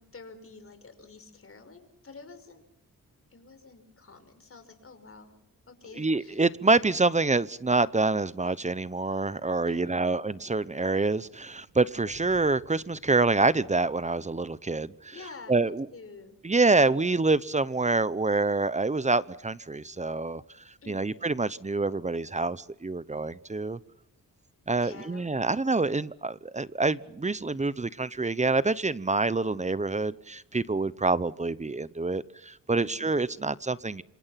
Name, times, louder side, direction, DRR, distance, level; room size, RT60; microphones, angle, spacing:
voice 1, 0.0-2.6 3.3-5.3 5.7-6.4 9.6-10.4 15.1-16.3 20.8-21.3 24.8-25.3 32.8-33.3, left 4 dB, 40° left, 5.7 m, -49 dB
voice 2, 6.0-15.1 15.5-15.9 16.4-20.4 20.9-23.8 24.7-34.0, right 3 dB, 20° right, 0.9 m, -26 dB
sound 1, 10.2-14.1, right 3 dB, 70° right, 5.6 m, -59 dB
27.0 x 26.5 x 5.9 m
wide cardioid pair, 105°, 34 cm